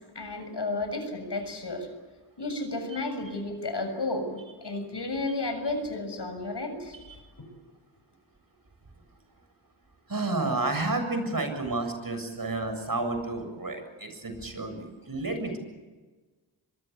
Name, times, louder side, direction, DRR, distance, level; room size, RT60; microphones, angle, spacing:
voice 1, 0.1-1.9 2.4-7.0, left 2 dB, 55° left, 7 dB, 7.2 m, -32 dB
voice 2, 10.1-15.6, right 2 dB, 40° right, 7 dB, 7.4 m, -31 dB
24.5 x 22.0 x 8.6 m, 1.3 s
cardioid pair, 50°, 50 cm